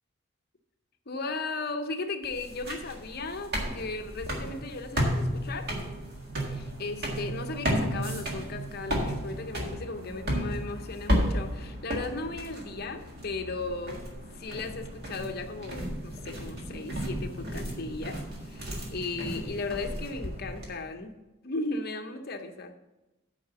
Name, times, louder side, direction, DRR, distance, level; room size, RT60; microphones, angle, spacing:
voice 1, 1.1-5.7 6.4-14.0 14.3-21.1 21.4-22.7, left 3 dB, 50° left, 6 dB, 0.8 m, -36 dB
sound 1, 2.2-20.7, equal, 50° right, 1.8 m, -33 dB
9.2 x 4.9 x 6.8 m, 1.0 s
head